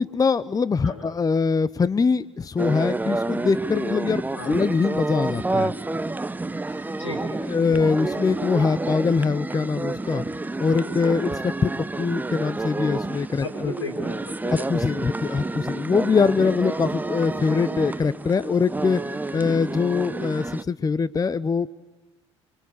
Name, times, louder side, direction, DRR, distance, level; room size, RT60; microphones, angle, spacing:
voice 1, 0.0-5.7 7.4-10.2 10.6-11.7 12.0-13.7 14.5-21.7, left 5 dB, 25° left, 18 dB, 0.8 m, -23 dB
sound 1, 2.6-20.6, right 2 dB, 10° right, 0.9 m, -29 dB
voice 2, 7.0-7.4 13.4-14.7 15.3-15.5, left 2 dB, 85° left, 2 dB, 5.2 m, -35 dB
29.5 x 24.0 x 8.4 m, 1.1 s
figure-of-eight pair, 55°, 15 cm